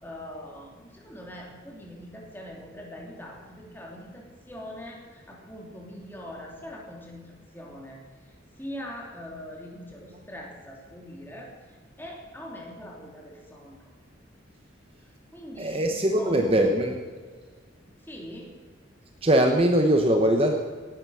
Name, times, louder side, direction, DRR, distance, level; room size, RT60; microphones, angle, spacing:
voice 1, 0.0-8.0 8.6-11.5 12.0-13.9 15.3-15.9 16.2-16.6 18.0-18.5, equal, 10° left, -1 dB, 2.9 m, -42 dB
voice 2, 15.6-17.0 19.2-20.5, right 1 dB, 30° right, 4 dB, 1.0 m, -21 dB
18.0 x 10.5 x 6.4 m, 1.5 s
head